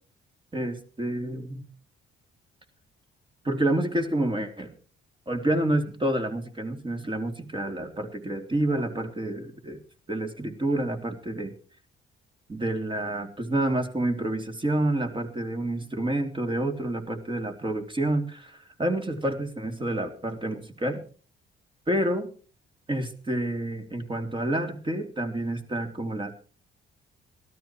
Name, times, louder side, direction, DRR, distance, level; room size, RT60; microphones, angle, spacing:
voice 1, 0.5-1.6 3.4-4.7 5.3-9.8 10.1-11.5 12.5-21.0 21.9-22.3 22.9-26.3, right 1 dB, 25° right, 6 dB, 3.2 m, -28 dB
17.5 x 13.0 x 4.6 m, 0.40 s
cardioid pair, 90°, 20 cm